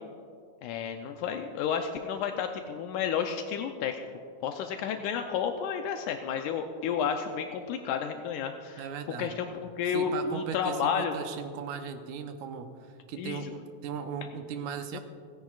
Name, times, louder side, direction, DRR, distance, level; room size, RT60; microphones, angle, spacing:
voice 1, 0.6-4.0 4.4-8.9 9.2-11.2 13.2-13.4 14.9-15.0, left 7 dB, 85° left, 5 dB, 2.1 m, -31 dB
voice 2, 8.8-9.4 9.8-12.7 13.1-15.0, right 6 dB, 75° right, 7 dB, 2.2 m, -37 dB
29.5 x 10.0 x 2.4 m, 2.2 s
omnidirectional pair, 3.6 m